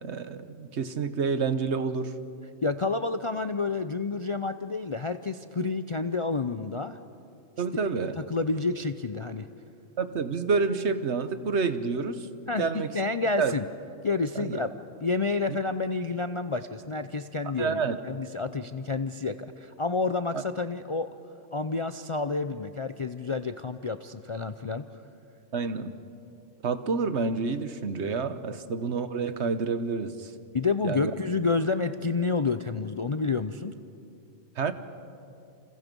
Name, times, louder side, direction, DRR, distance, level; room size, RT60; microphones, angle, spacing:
voice 1, 0.0-2.1 7.6-8.2 10.0-12.3 12.6-12.9 13.4-13.5 14.3-14.6 17.6-18.0 20.3-20.4 25.5-25.9 26.6-30.3 30.8-31.1 34.6-34.7, right 4 dB, 65° right, 11 dB, 1.3 m, -28 dB
voice 2, 2.6-7.0 8.2-9.5 12.5-12.6 12.9-13.6 14.0-14.7 15.0-21.1 21.5-24.8 30.5-33.7, left 3 dB, 40° left, 9 dB, 0.4 m, -29 dB
29.0 x 28.0 x 5.4 m, 2.7 s
omnidirectional pair, 1.3 m